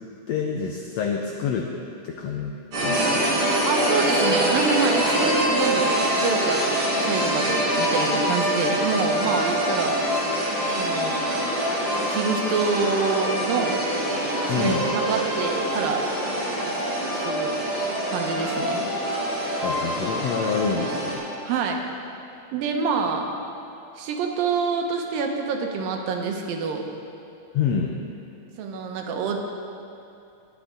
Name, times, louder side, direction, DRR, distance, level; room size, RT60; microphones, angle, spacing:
voice 1, 0.3-1.7 2.0-2.5 2.8-3.3 14.5-14.9 19.6-21.2 27.5-28.0, left 6 dB, 85° left, 2 dB, 1.5 m, -27 dB
sound 1, 2.7-21.1, equal, 55° right, 4.7 m, -24 dB
voice 2, 3.6-10.0 10.7-11.2 12.1-13.8 14.5-16.0 17.1-17.5 18.1-18.8 21.4-21.8 22.5-23.3 24.0-26.8 28.6-29.4, right 5 dB, 90° right, 3 dB, 2.8 m, -26 dB
21.0 x 8.4 x 3.8 m, 2.6 s
omnidirectional pair, 3.9 m